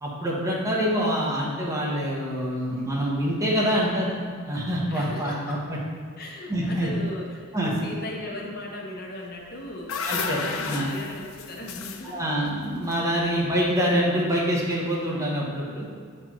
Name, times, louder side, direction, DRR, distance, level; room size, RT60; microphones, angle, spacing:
voice 1, 0.0-5.8 6.5-6.9 7.5-7.7 10.0-10.4 10.7-10.9 12.1-15.9, equal, 15° right, -4 dB, 0.9 m, -26 dB
voice 2, 2.7-3.0 4.9-5.6 6.2-12.2 13.3-13.5, left 1 dB, 50° left, -1 dB, 0.8 m, -37 dB
sound 1, 9.4-13.7, left 5 dB, 85° left, 0.4 m, -34 dB
7.2 x 4.4 x 3.0 m, 2.1 s
head